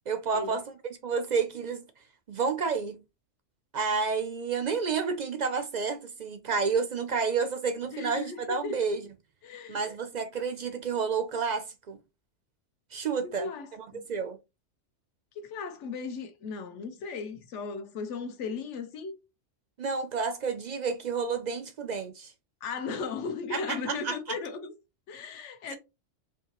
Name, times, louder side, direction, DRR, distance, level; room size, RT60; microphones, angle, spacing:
voice 1, 0.1-0.7 1.0-1.8 2.3-3.0 3.7-9.1 9.7-12.0 12.9-13.5 13.8-14.4 19.8-22.3 23.5-24.4 25.7-25.8, right 5 dB, 60° right, 0.4 m, -30 dB
voice 2, 7.9-8.8 9.4-9.9 13.2-14.0 15.3-19.2 22.6-24.7 25.1-25.8, left 5 dB, 70° left, 1.1 m, -36 dB
4.8 x 2.8 x 2.9 m
omnidirectional pair, 1.3 m